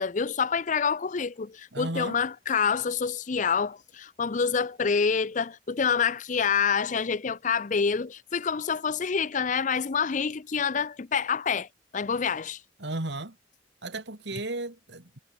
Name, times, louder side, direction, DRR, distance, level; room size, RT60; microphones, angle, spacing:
voice 1, 0.0-11.7 11.9-12.6, left 6 dB, 40° left, 0.5 m, -27 dB
voice 2, 1.7-2.2 12.8-13.4 13.8-15.2, right 2 dB, 60° right, 2.5 m, -34 dB
head